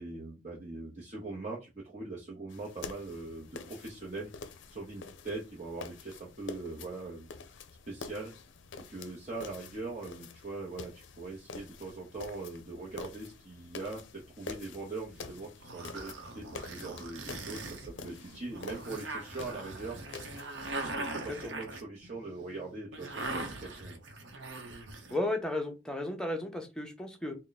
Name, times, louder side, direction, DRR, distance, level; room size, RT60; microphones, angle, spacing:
voice 1, 0.0-4.3 4.7-7.5 7.9-8.3 8.9-20.0 20.4-24.0, right 3 dB, 35° right, -3 dB, 0.7 m, -41 dB
sound 1, 2.5-20.8, left 4 dB, 75° left, 0.5 m, -48 dB
sound 2, 15.2-25.2, right 2 dB, 70° right, 0.8 m, -41 dB
voice 2, 25.1-27.4, left 1 dB, 5° left, 2 dB, 0.6 m, -34 dB
3.5 x 2.1 x 4.0 m, 0.26 s
head